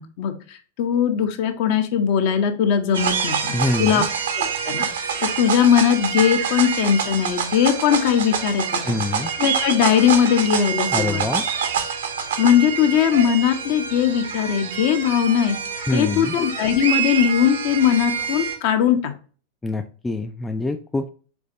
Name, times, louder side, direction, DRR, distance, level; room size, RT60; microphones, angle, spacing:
voice 1, 0.0-4.0 4.4-9.0 9.4-11.2 12.4-15.6 15.9-19.1, left 9 dB, 50° left, 7 dB, 0.8 m, -20 dB
sound 1, 2.9-18.6, right 7 dB, 60° right, 0.8 m, -26 dB
voice 2, 3.5-4.1 8.8-9.3 10.9-11.4 15.9-16.3 19.6-21.1, left 2 dB, 10° left, 7 dB, 0.3 m, -25 dB
4.7 x 4.1 x 2.6 m, 0.39 s
figure-of-eight pair, 90°, 0 cm